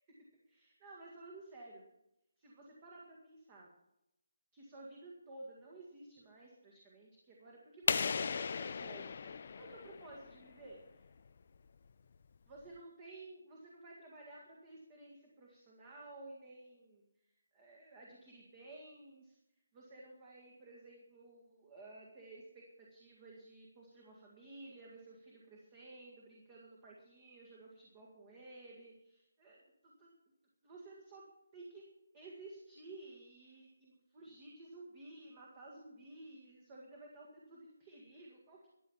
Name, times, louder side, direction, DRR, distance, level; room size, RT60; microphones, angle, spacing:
voice 1, 0.5-1.8 2.4-3.7 4.5-11.0 12.5-17.0 17.5-19.4 19.7-30.1 30.6-31.2 31.5-31.8 32.1-38.7, right 2 dB, 20° right, -2 dB, 1.8 m, -54 dB
Impulse Response Church, 7.9-10.5, left 6 dB, 40° left, 0.6 m, -36 dB
13.5 x 8.7 x 7.1 m, 0.86 s
hypercardioid pair, 175°, 0 cm